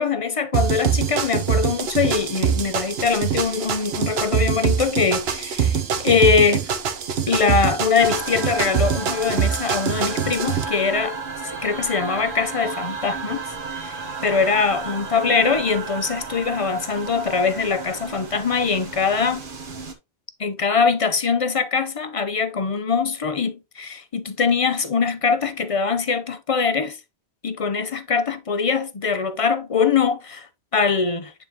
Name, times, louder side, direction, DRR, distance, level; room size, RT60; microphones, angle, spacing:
voice 1, 0.0-6.7 7.3-11.2 11.4-13.4 13.7-19.4 20.4-27.0 27.4-31.3, left 5 dB, 40° left, 0.5 m, -22 dB
sound 1, 0.5-10.6, right 7 dB, 70° right, 1.0 m, -24 dB
sound 2, 8.0-19.9, right 4 dB, 55° right, 1.2 m, -33 dB
9.3 x 3.6 x 2.9 m
omnidirectional pair, 1.1 m